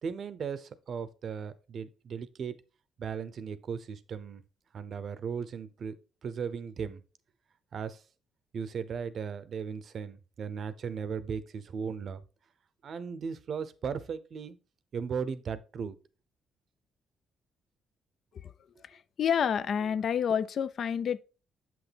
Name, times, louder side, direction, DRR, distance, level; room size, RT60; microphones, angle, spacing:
voice 1, 0.0-2.6 3.0-4.4 4.7-5.9 6.2-7.0 7.7-8.0 8.5-12.2 12.8-14.6 14.9-16.0, right 6 dB, 55° right, 0.6 m, -37 dB
voice 2, 18.8-21.2, left 8 dB, 60° left, 0.4 m, -29 dB
7.5 x 6.0 x 3.4 m
cardioid pair, 90°, 0 cm